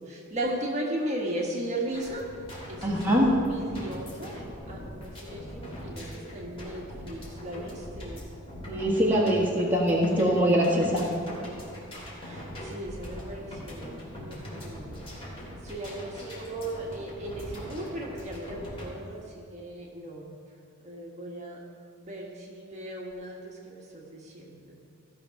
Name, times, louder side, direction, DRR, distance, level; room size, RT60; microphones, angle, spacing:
voice 1, 0.0-2.3 2.7-8.2 12.2-15.2 15.6-20.3 20.8-21.6 22.0-24.8, right 1 dB, 35° right, -2 dB, 1.4 m, -37 dB
sound 1, 1.9-18.8, equal, 25° left, 3.2 m, -41 dB
voice 2, 2.8-3.3 8.7-11.0, equal, 10° right, -4 dB, 1.4 m, -23 dB
15.0 x 6.0 x 5.7 m, 2.2 s
head